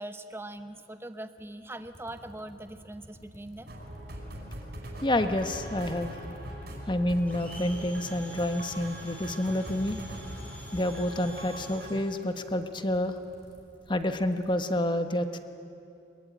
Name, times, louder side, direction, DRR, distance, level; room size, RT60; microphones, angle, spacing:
voice 1, 0.0-3.7, right 1 dB, 15° right, 9 dB, 1.0 m, -41 dB
sound 1, 1.4-1.5 1.8-4.7 5.1-11.5 11.8-12.0 12.3-14.5, equal, 40° left, 4.8 m, -50 dB
sound 2, 3.7-12.0, right 1 dB, 60° right, 5.2 m, -42 dB
voice 2, 5.0-6.1 6.9-10.0 10.7-13.2 13.9-15.4, left 1 dB, 25° left, 8 dB, 1.2 m, -28 dB
Domestic sounds home sounds, 7.3-12.3, equal, 10° left, 3.6 m, -49 dB
23.0 x 22.5 x 9.2 m, 2.6 s
head